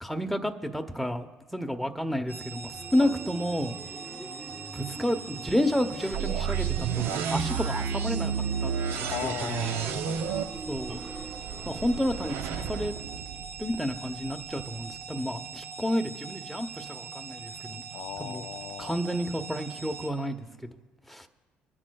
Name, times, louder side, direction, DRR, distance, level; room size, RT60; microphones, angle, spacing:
voice 1, 0.0-1.3 1.5-3.8 4.7-8.3 8.6-8.7 9.0-9.7 10.7-11.0 11.6-12.9 13.6-17.8 18.2-18.4 18.8-20.7 21.1-21.3, equal, ahead, 6 dB, 0.8 m, -30 dB
sound 1, 2.3-20.1, right 6 dB, 45° right, 2.1 m, -42 dB
sound 2, 2.7-12.4, right 2 dB, 25° right, 1.5 m, -44 dB
sound 3, 6.1-14.0, right 7 dB, 80° right, 0.6 m, -31 dB
voice 2, 9.1-10.5 17.9-19.2, left 12 dB, 75° left, 14 dB, 0.4 m, -38 dB
27.0 x 9.8 x 2.3 m, 1.3 s
cardioid pair, 90°, 4 cm